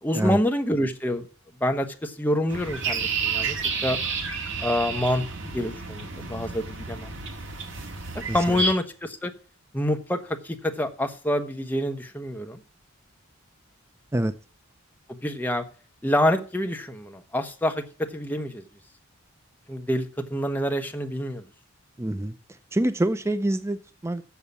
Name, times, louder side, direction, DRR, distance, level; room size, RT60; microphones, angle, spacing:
voice 1, 0.0-1.2 1.6-3.6 3.8-4.0 4.6-7.1 8.1-9.3 9.7-12.6 15.1-15.6 16.0-17.8 18.1-18.6 19.7-20.0 20.3-21.4, left 1 dB, 10° left, 5 dB, 1.1 m, -27 dB
sound 1, 2.5-8.7, right 4 dB, 60° right, 1.8 m, -30 dB
voice 2, 22.0-24.2, right 1 dB, 10° right, 11 dB, 0.4 m, -26 dB
7.3 x 7.0 x 8.3 m, 0.38 s
head